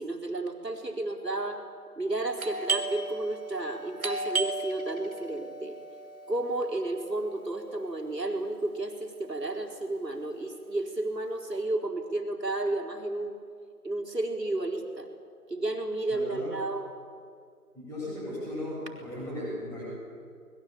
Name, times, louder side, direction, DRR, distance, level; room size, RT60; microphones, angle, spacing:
voice 1, 0.0-1.6 2.0-5.8 6.3-13.3 13.8-15.1 15.5-16.9, right 2 dB, 90° right, 2 dB, 4.7 m, -32 dB
Doorbell, 2.4-7.8, right 3 dB, 60° right, 2.7 m, -35 dB
voice 2, 16.1-16.5 17.7-19.8, left 1 dB, 5° left, -8 dB, 7.8 m, -36 dB
26.0 x 21.0 x 8.5 m, 2.2 s
figure-of-eight pair, 160°, 48 cm